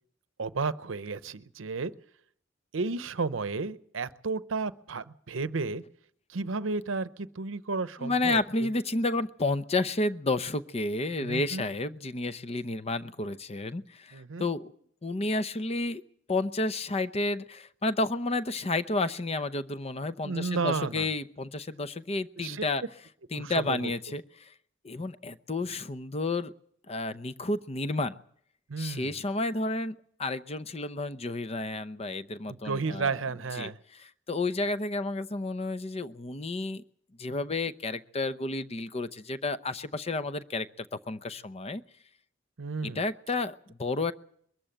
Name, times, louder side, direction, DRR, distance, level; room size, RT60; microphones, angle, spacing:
voice 1, 0.4-1.9 2.7-5.8 6.3-8.7 11.2-11.7 14.1-14.4 20.2-21.1 22.4-22.6 23.3-23.9 28.7-29.1 32.5-33.8 42.6-43.0, right 4 dB, 90° right, 15 dB, 0.7 m, -32 dB
voice 2, 8.0-14.7 15.0-16.0 16.3-22.8 23.3-24.5 24.8-26.5 26.9-28.2 28.8-33.1 33.6-36.8 37.2-41.8 42.8-44.1, left 2 dB, 35° left, 12 dB, 0.7 m, -31 dB
22.0 x 13.5 x 9.0 m, 0.67 s
head